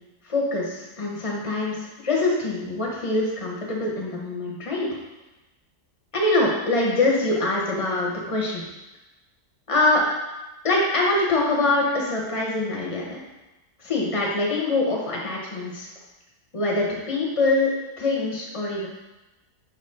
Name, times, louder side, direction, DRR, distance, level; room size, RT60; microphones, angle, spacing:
voice 1, 0.3-1.8 2.0-4.9 6.1-8.6 9.7-10.0 10.6-13.2 13.8-15.9 16.5-17.7 18.0-18.9, left 2 dB, 20° left, -3 dB, 1.1 m, -24 dB
5.9 x 4.1 x 4.4 m, 1.0 s
omnidirectional pair, 1.7 m